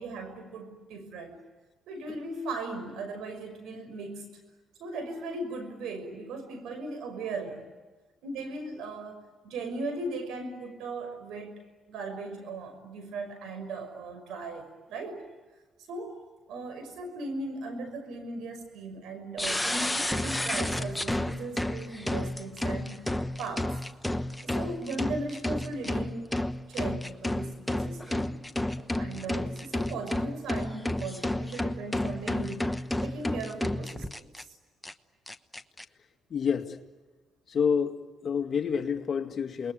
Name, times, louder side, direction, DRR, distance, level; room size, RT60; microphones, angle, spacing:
voice 1, 0.0-1.3 1.9-4.4 4.8-7.7 8.2-11.6 11.9-15.2 15.9-16.2 16.5-23.1 23.4-23.7 24.4-26.3 26.5-28.3 28.8-32.7 33.0-34.6, right 2 dB, 85° right, 8 dB, 5.8 m, -38 dB
sound 1, 19.4-34.4 34.8-34.9 35.3-35.8, left 1 dB, 5° left, 1.1 m, -31 dB
voice 2, 36.3-36.8 37.5-39.7, left 6 dB, 50° left, 5 dB, 2.2 m, -28 dB
28.5 x 21.5 x 9.4 m, 1.3 s
cardioid pair, 90°, 0 cm